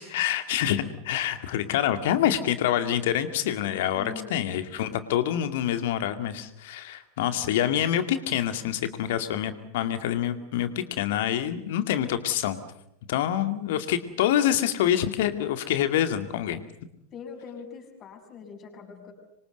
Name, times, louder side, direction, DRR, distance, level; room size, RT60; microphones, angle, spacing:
voice 1, 0.0-12.6 13.1-16.6, left 11 dB, 55° left, 10 dB, 2.2 m, -26 dB
voice 2, 3.9-4.6 17.1-19.1, left 6 dB, 30° left, 4 dB, 6.8 m, -42 dB
26.5 x 24.5 x 8.0 m, 0.78 s
figure-of-eight pair, 90°, 0 cm